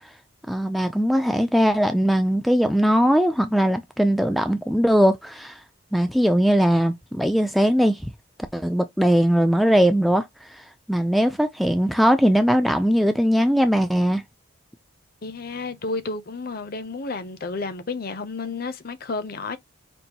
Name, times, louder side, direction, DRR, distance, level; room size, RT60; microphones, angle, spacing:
voice 1, 0.5-5.6 5.9-8.1 8.5-10.6 10.9-14.2, equal, ahead, 0.3 m, -20 dB
voice 2, 15.2-19.6, left 3 dB, 45° left, 0.6 m, -31 dB
5.3 x 2.5 x 2.9 m
head